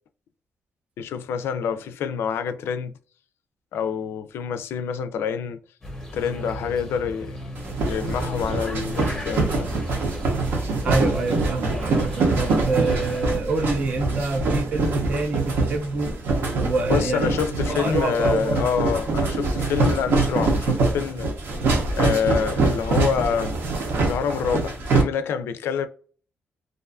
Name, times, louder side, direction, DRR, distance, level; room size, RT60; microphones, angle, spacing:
voice 1, 1.0-2.9 3.7-5.6 6.1-7.4 7.8-9.7 16.9-21.3 21.9-23.6 24.0-25.9, left 7 dB, 75° left, 0.3 m, -26 dB
sound 1, 5.8-13.4, equal, 10° left, 0.7 m, -36 dB
sound 2, 7.6-25.0, right 3 dB, 65° right, 0.7 m, -24 dB
voice 2, 10.8-16.1 16.5-17.3 17.7-18.7, right 3 dB, 30° right, 0.4 m, -26 dB
2.5 x 2.3 x 2.3 m
wide cardioid pair, 180°, 4 cm